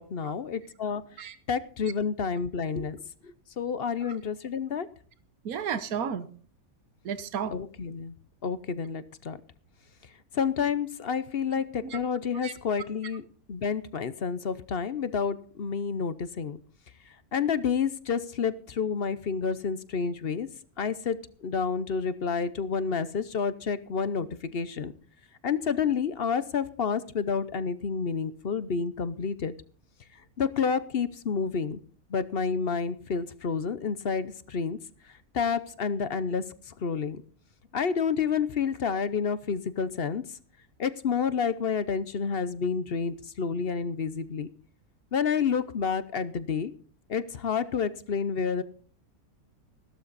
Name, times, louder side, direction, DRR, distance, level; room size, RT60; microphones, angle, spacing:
voice 1, 0.0-1.0 1.5-3.0 3.6-4.9 7.5-8.1 8.4-9.4 10.3-13.2 13.5-16.6 17.3-20.5 20.8-24.9 25.4-29.5 30.4-31.8 32.1-34.8 35.3-36.4 36.8-37.2 37.7-40.2 40.8-44.5 45.1-46.7 47.1-48.6, left 6 dB, 50° left, 14 dB, 0.9 m, -29 dB
voice 2, 5.4-6.3 7.0-7.5 11.5-12.0 12.4-12.5, right 7 dB, 75° right, 12 dB, 1.5 m, -33 dB
15.5 x 12.5 x 4.1 m, 0.43 s
omnidirectional pair, 1.6 m